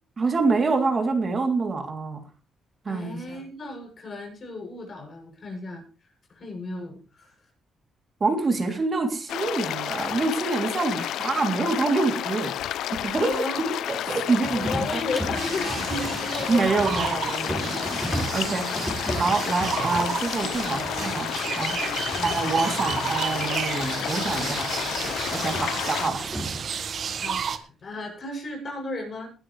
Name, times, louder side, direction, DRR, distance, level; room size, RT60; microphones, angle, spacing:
voice 1, 0.2-2.2 2.8-3.4 8.2-12.5 12.9-14.7 15.6-15.8 16.5-18.7 19.2-21.3 21.6-21.7 22.2-24.7 25.3-26.2, right 3 dB, 35° right, 4 dB, 3.2 m, -26 dB
voice 2, 2.9-5.8 6.3-7.3 8.6-8.8 13.1-13.6 14.0-14.2 14.5-16.9 18.3-18.8 22.1-22.3 25.5-25.6 27.1-29.3, left 2 dB, 45° left, 2 dB, 7.9 m, -34 dB
sound 1, 9.3-26.1, left 12 dB, 80° left, 0.6 m, -31 dB
sound 2, 14.4-21.6 21.9-23.5 24.3-26.9, right 1 dB, 5° right, 5.1 m, -36 dB
sound 3, 15.3-27.6, right 7 dB, 55° right, 1.7 m, -32 dB
20.0 x 12.5 x 3.4 m, 0.35 s
cardioid pair, 90°, 0 cm